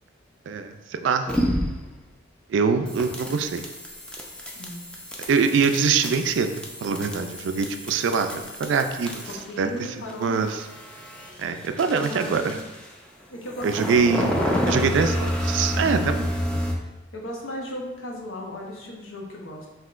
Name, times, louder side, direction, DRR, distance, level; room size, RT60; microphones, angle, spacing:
voice 1, 0.5-1.3 2.5-3.7 5.3-6.5 6.8-9.3 9.6-9.7 10.2-10.6 11.4-12.5 13.6-16.6, right 5 dB, 65° right, 7 dB, 0.3 m, -24 dB
sound 1, 1.3-1.9 2.9-9.5 9.8-12.9 13.5-16.7, equal, 5° left, 0.4 m, -29 dB
voice 2, 4.6-5.0 9.3-10.5 11.8-12.7 13.3-14.2 15.7-16.1 17.1-19.7, left 1 dB, 85° left, 0 dB, 0.8 m, -36 dB
5.5 x 2.8 x 2.4 m, 1.1 s
head